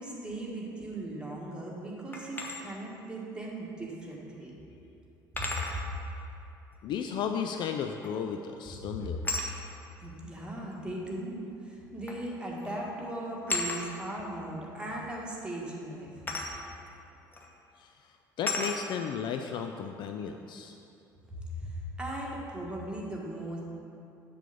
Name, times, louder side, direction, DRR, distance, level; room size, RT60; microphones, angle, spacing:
voice 1, 0.0-4.5 5.7-5.8 8.9-9.0 10.0-16.1 21.3-23.6, right 1 dB, 10° right, -4 dB, 1.8 m, -38 dB
sound 1, 2.1-2.6 4.1-4.2 5.4-5.8 8.0-8.3 9.2-9.5 10.7-10.8 12.1-12.3 12.6-12.8 13.5-13.8 16.3-16.5 17.3-17.5 18.5-18.8, left 2 dB, 15° left, 1.1 m, -33 dB
voice 2, 6.8-9.2 17.8-17.9 18.4-20.7, left 7 dB, 45° left, 5 dB, 0.4 m, -34 dB
7.4 x 6.8 x 5.2 m, 2.7 s
figure-of-eight pair, 60°, 11 cm